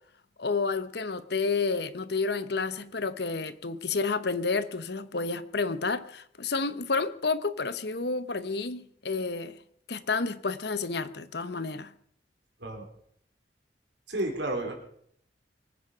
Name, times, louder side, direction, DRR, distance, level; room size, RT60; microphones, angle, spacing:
voice 1, 0.4-9.5 9.9-11.9, left 4 dB, 60° left, 14 dB, 0.9 m, -30 dB
voice 2, 14.1-14.7, right 1 dB, 65° right, 2 dB, 4.0 m, -31 dB
23.5 x 9.8 x 5.7 m, 0.65 s
head